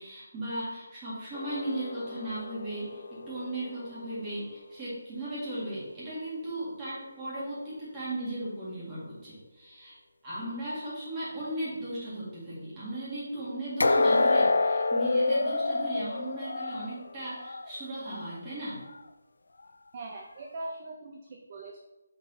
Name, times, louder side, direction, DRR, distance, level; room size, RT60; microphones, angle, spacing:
voice 1, 0.0-10.0 10.2-18.8, right 1 dB, 15° right, -9 dB, 2.0 m, -37 dB
sound 1, 1.3-4.5 13.8-17.7 18.1-18.3 18.9-19.0, left 3 dB, 70° left, 0.4 m, -28 dB
voice 2, 19.9-21.8, right 2 dB, 30° right, 2 dB, 0.5 m, -41 dB
5.9 x 4.1 x 4.1 m, 1.0 s
figure-of-eight pair, 170°, 0 cm